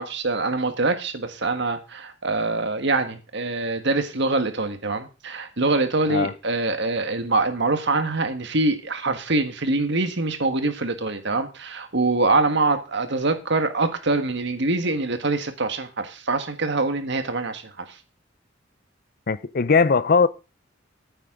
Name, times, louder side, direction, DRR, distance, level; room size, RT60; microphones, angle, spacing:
voice 1, 0.0-17.6, right 3 dB, 65° right, 1.6 m, -24 dB
voice 2, 19.3-20.3, left 4 dB, 50° left, 0.6 m, -19 dB
14.5 x 9.0 x 3.8 m
head